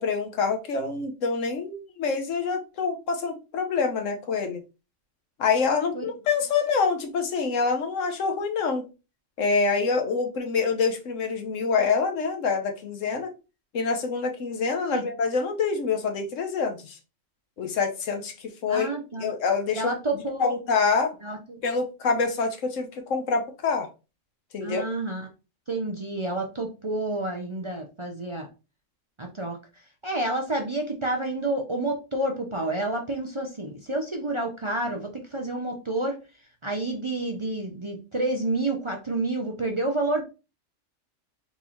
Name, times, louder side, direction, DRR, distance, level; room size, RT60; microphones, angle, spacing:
voice 1, 0.0-4.6 5.4-8.9 9.4-13.3 13.7-17.0 17.6-18.9 19.2-19.9 20.4-21.1 21.6-23.9 24.5-24.8, left 5 dB, 80° left, 5 dB, 1.3 m, -26 dB
voice 2, 18.7-19.3 19.7-20.5 21.2-21.6 24.6-25.3 25.7-28.5 29.2-29.6 30.0-36.2 36.6-40.2, right 2 dB, 30° right, 1 dB, 0.6 m, -29 dB
4.1 x 3.6 x 3.0 m, 0.30 s
omnidirectional pair, 1.3 m